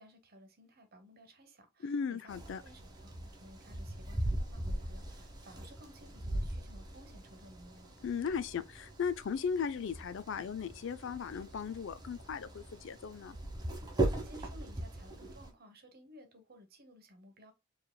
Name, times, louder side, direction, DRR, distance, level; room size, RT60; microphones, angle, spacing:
voice 1, 0.0-8.0 14.0-17.5, equal, 50° right, 1.1 m, -57 dB
voice 2, 1.8-2.6 8.0-13.4, left 6 dB, 65° left, 0.4 m, -37 dB
sound 1, 2.3-15.5, right 1 dB, 20° right, 1.1 m, -40 dB
4.7 x 3.3 x 2.2 m
head